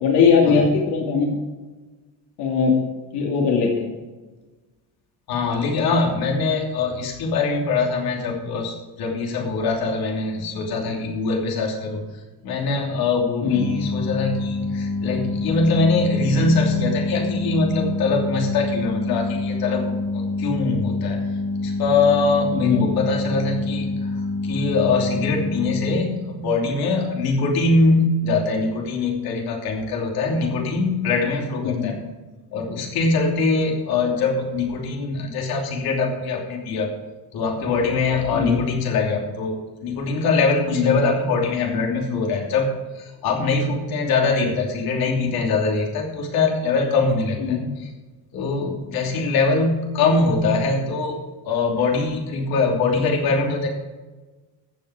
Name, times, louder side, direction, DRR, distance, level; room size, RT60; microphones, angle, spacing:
voice 1, 0.0-1.4 2.4-2.8 3.1-3.9 13.4-13.7 22.5-22.9 30.4-30.5 31.6-32.0 38.3-38.6 40.7-41.0 47.4-47.7, left 6 dB, 80° left, -1 dB, 2.5 m, -20 dB
voice 2, 5.3-12.0 12.4-21.2 21.6-31.9 32.5-36.9 37.3-47.9 48.3-51.1 51.4-53.7, left 3 dB, 65° left, 0 dB, 3.0 m, -23 dB
sound 1, 13.4-25.9, left 3 dB, 30° left, 3.0 m, -26 dB
14.0 x 7.5 x 4.9 m, 1.3 s
cardioid pair, 175°, 40 cm